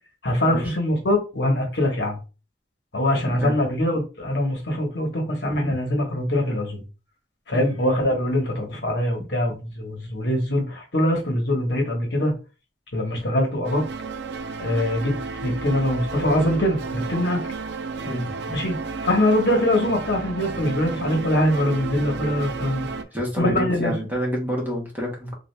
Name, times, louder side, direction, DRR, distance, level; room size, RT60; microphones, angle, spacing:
voice 1, 0.2-2.2 2.9-6.8 7.5-12.3 12.9-13.8 14.6-17.5 18.5-18.8 19.0-22.9 23.4-23.9, left 1 dB, 65° left, 1.1 m, -23 dB
sound 1, 13.6-23.0, right 4 dB, 65° right, 0.4 m, -32 dB
voice 2, 23.1-25.3, equal, 10° right, 1.1 m, -28 dB
3.4 x 2.4 x 3.2 m
head